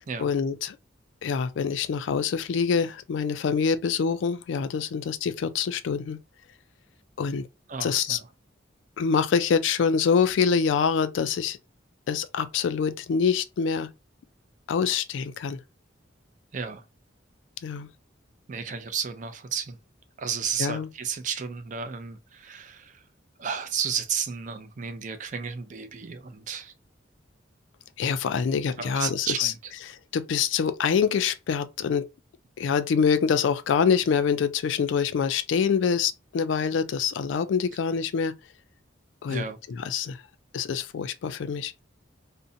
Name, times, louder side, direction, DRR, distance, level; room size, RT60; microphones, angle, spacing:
voice 1, 0.2-0.8 1.2-6.2 7.2-7.5 7.8-8.2 9.0-11.6 12.1-13.9 14.7-15.6 17.6-17.9 20.6-20.9 28.0-29.5 29.9-32.0 32.6-38.3 39.2-39.4 39.8-40.2 40.5-41.7, left 6 dB, 75° left, 0.3 m, -25 dB
voice 2, 7.7-8.3 16.5-16.8 18.5-19.8 20.2-23.0 23.4-26.7 28.8-29.7 39.3-39.6, right 7 dB, 40° right, 0.4 m, -33 dB
2.5 x 2.1 x 2.6 m
head